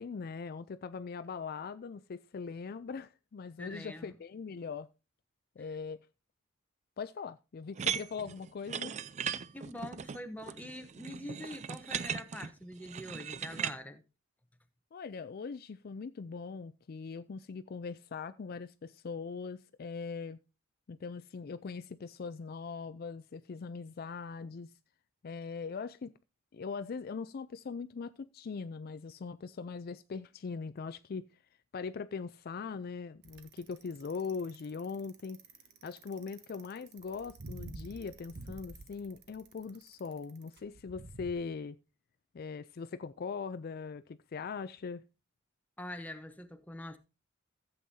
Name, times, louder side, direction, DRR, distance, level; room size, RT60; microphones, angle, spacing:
voice 1, 0.0-4.9 5.6-6.0 7.0-8.9 14.9-20.4 20.9-24.7 25.2-26.1 26.5-31.2 31.7-35.4 35.8-41.8 42.3-45.0, left 5 dB, 50° left, 0.4 m, -41 dB
voice 2, 3.6-4.1 9.5-14.0 45.8-47.0, left 1 dB, 10° left, 0.9 m, -44 dB
sound 1, 7.8-13.8, right 8 dB, 35° right, 0.4 m, -38 dB
Bicycle, 33.2-41.3, right 2 dB, 55° right, 1.2 m, -49 dB
14.5 x 7.9 x 2.7 m
head